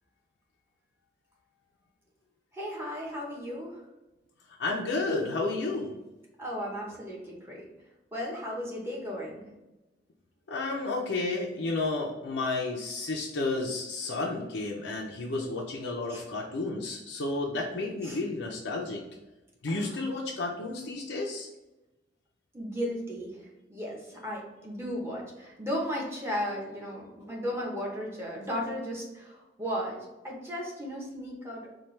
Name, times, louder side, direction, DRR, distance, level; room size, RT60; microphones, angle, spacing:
voice 1, 2.5-3.8 6.4-7.7 8.1-9.4 16.1-16.2 18.0-18.2 19.7-20.0 22.5-30.0 30.2-31.7, equal, 15° right, -3 dB, 0.9 m, -35 dB
voice 2, 4.6-5.9 10.5-19.0 19.6-21.5, left 3 dB, 70° left, -2 dB, 0.5 m, -31 dB
4.4 x 2.3 x 3.2 m, 1.0 s
head